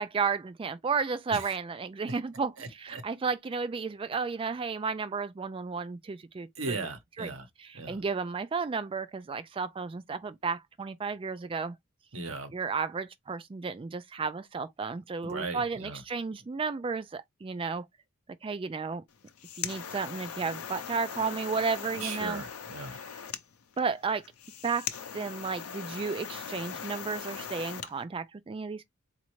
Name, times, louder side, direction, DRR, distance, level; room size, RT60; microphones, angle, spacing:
voice 1, 0.0-6.9 7.2-7.3 7.6-11.8 12.5-17.9 18.4-19.0 19.6-22.4 22.9-23.1 23.8-24.2 24.6-24.9 25.1-28.8, right 5 dB, 25° right, 0.3 m, -33 dB
voice 2, 2.6-3.0 6.6-7.5 7.7-8.0 12.1-12.5 15.2-16.0 22.0-23.0, right 3 dB, 70° right, 0.9 m, -37 dB
sound 1, 19.1-27.9, left 8 dB, 85° left, 0.6 m, -40 dB
4.2 x 2.5 x 3.0 m
head